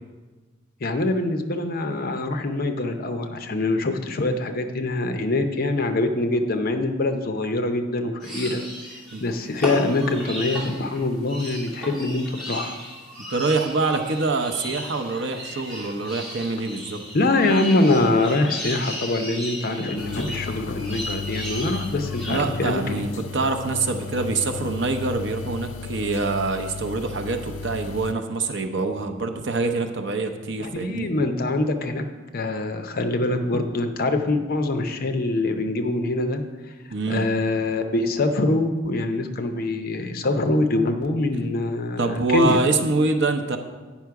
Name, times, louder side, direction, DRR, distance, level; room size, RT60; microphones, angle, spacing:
voice 1, 0.8-8.6 8.9-12.8 17.1-23.0 30.6-32.0 32.3-36.4 37.1-42.6, left 2 dB, 45° left, 7 dB, 0.7 m, -24 dB
sound 1, 8.2-22.4, equal, 5° left, 2.3 m, -35 dB
voice 2, 13.3-17.0 22.2-31.1 36.9-37.3 42.0-43.6, right 3 dB, 60° right, 6 dB, 0.7 m, -25 dB
sound 2, 20.0-28.1, left 5 dB, 85° left, 0.6 m, -35 dB
9.1 x 5.8 x 4.7 m, 1.3 s
head